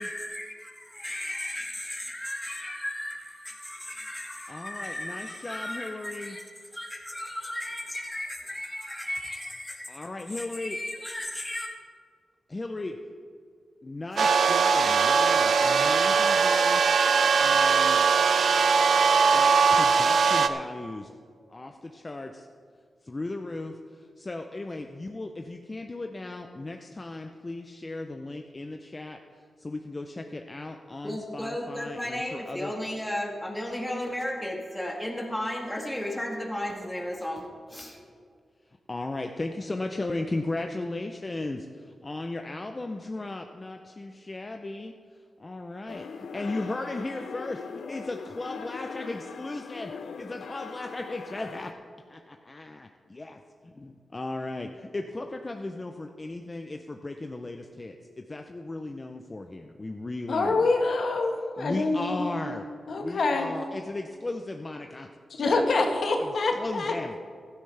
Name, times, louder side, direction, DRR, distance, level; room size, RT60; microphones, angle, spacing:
voice 1, 0.0-6.4 6.7-9.9 10.3-11.7 17.2-17.3 31.0-38.0, left 1 dB, 10° left, -1 dB, 1.5 m, -35 dB
voice 2, 4.5-6.4 9.9-10.8 12.5-12.9 13.8-17.0 17.4-18.0 19.2-21.1 21.5-22.5 23.0-32.7 38.9-44.9 45.4-51.7 52.1-60.7 61.6-62.6 62.9-65.1 66.2-67.2, left 2 dB, 25° left, 4 dB, 0.5 m, -36 dB
sound 1, 14.2-20.5, right 5 dB, 70° right, 0.6 m, -21 dB
sound 2, 45.9-51.7, left 5 dB, 80° left, 0.6 m, -40 dB
voice 3, 60.3-62.2 62.9-63.5 65.3-66.9, left 3 dB, 65° left, 3 dB, 1.3 m, -26 dB
15.5 x 12.5 x 3.3 m, 2.1 s
wide cardioid pair, 115°, 0 cm